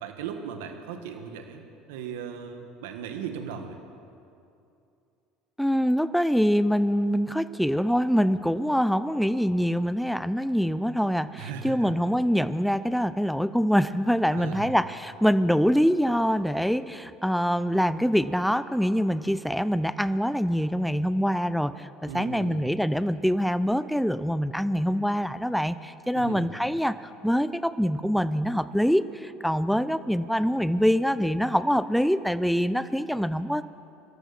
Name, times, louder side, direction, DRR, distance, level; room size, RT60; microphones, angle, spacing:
voice 1, 0.0-3.8 11.3-11.9 14.3-14.7 22.1-22.7 26.1-26.5, right 7 dB, 80° right, 6 dB, 1.5 m, -37 dB
voice 2, 5.6-33.6, equal, ahead, 14 dB, 0.5 m, -24 dB
24.0 x 13.5 x 4.2 m, 2.6 s
hypercardioid pair, 75°, 0 cm